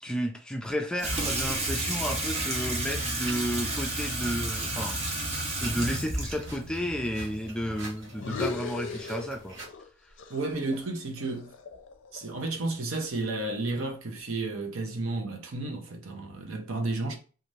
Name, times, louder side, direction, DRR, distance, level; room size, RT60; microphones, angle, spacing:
voice 1, 0.0-9.6, equal, 5° left, 0.3 m, -32 dB
Water tap faucet / Sink (filling or washing), 1.0-8.0, right 2 dB, 30° right, 0.7 m, -32 dB
sound 1, 2.2-9.7, right 2 dB, 60° right, 1.1 m, -46 dB
sound 2, 8.1-9.9 10.2-12.4, left 3 dB, 60° left, 0.5 m, -38 dB
voice 2, 10.3-11.5 12.1-17.2, right 2 dB, 80° right, 0.7 m, -32 dB
2.6 x 2.5 x 3.1 m
head